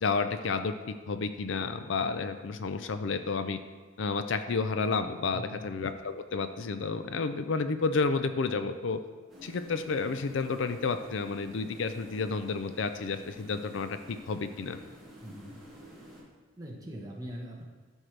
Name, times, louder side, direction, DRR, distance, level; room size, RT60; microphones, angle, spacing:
voice 1, 0.0-3.6 4.0-9.0 9.4-14.8, left 4 dB, 60° left, 9 dB, 0.4 m, -31 dB
voice 2, 5.3-5.7 15.2-15.6 16.6-17.6, equal, 15° right, -2 dB, 1.1 m, -42 dB
sound 1, 9.3-16.2, equal, ahead, 2.2 m, -50 dB
12.5 x 6.3 x 3.3 m, 1.4 s
head